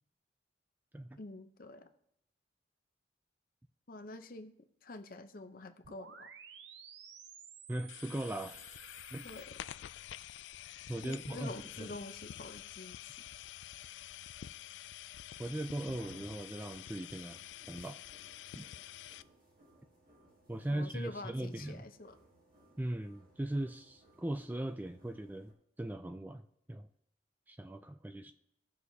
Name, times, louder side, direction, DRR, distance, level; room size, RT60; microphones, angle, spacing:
voice 1, 1.2-1.9 3.9-4.5 4.8-6.3 9.2-9.5 11.0-13.2 20.7-22.2, left 2 dB, 50° left, 8 dB, 0.7 m, -47 dB
sound 1, 5.8-9.5, right 7 dB, 75° right, 0.7 m, -54 dB
voice 2, 7.7-8.6 9.1-9.3 10.9-11.5 11.8-11.9 15.4-17.4 17.7-18.0 18.5-18.7 20.5-21.9 22.8-26.4 26.7-26.9 27.5-28.3, right 1 dB, 10° right, 8 dB, 0.3 m, -39 dB
sound 2, 7.9-19.2, left 12 dB, 75° left, 0.3 m, -48 dB
sound 3, 15.3-25.5, right 1 dB, 50° right, 2.2 m, -63 dB
18.0 x 6.3 x 2.8 m, 0.78 s
head